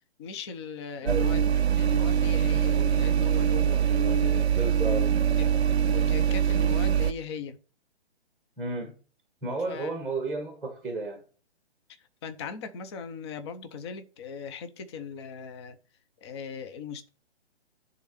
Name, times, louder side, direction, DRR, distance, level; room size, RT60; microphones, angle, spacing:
voice 1, 0.2-5.0 5.4-5.5 5.8-7.6 9.7-10.0 12.2-15.8 16.2-17.1, left 6 dB, 25° left, 0.7 m, -39 dB
sound 1, 1.1-7.1, right 8 dB, 70° right, 0.6 m, -23 dB
voice 2, 4.5-5.1 8.6-8.9 9.4-11.2, right 2 dB, ahead, 1.6 m, -32 dB
10.5 x 3.9 x 5.8 m
figure-of-eight pair, 130°, 33 cm